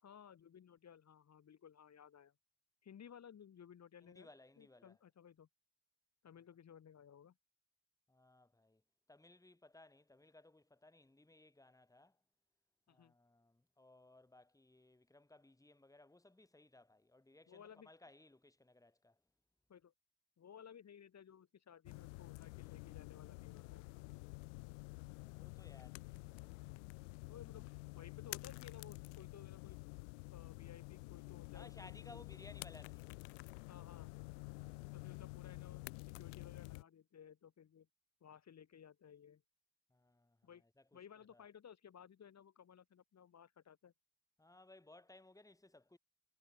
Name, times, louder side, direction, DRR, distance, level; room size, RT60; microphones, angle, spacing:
voice 1, 0.0-2.3 2.8-4.3 4.6-5.5 6.2-7.3 12.9-13.1 17.5-17.9 19.7-19.9 20.4-23.9 27.3-27.7 27.9-29.8 30.3-31.7 32.0-32.2 33.7-34.1 34.9-37.9 38.2-39.4 40.4-40.6 40.9-43.9, left 8 dB, 45° left, 1.7 m, -58 dB
voice 2, 4.0-5.0 8.1-8.8 9.1-12.2 12.9-19.2 25.0-26.5 31.5-33.1 34.5-35.1 39.9-40.5 40.8-41.0 41.3-41.4 44.4-46.0, left 2 dB, 10° left, 2.1 m, -62 dB
sound 1, 21.9-36.8, left 29 dB, 85° left, 0.6 m, -50 dB
hypercardioid pair, 50°, 36 cm